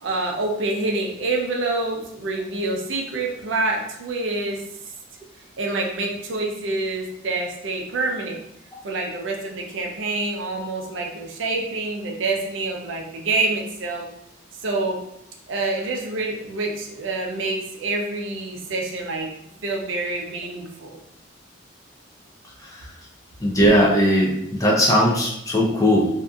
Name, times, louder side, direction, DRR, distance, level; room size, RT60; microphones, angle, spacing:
voice 1, 0.0-4.6 5.6-8.4 8.8-14.0 14.6-15.0 15.5-19.3 19.6-21.0, right 2 dB, 60° right, 1 dB, 0.5 m, -27 dB
voice 2, 23.4-26.1, equal, 15° left, -3 dB, 0.4 m, -18 dB
2.7 x 2.4 x 2.3 m, 0.80 s
head